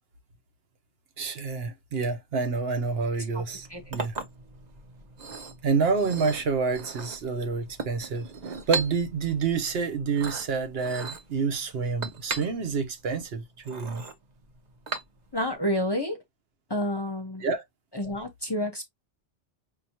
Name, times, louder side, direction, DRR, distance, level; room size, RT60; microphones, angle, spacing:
voice 1, 1.2-4.1 5.6-8.3 8.7-14.0 17.4-17.6, right 5 dB, 65° right, 1.0 m, -28 dB
Chink clink, 3.5-15.5, right 4 dB, 40° right, 0.9 m, -39 dB
voice 2, 15.3-16.2 16.7-17.5 17.9-18.9, equal, 25° left, 0.8 m, -29 dB
5.1 x 2.8 x 2.8 m
omnidirectional pair, 1.2 m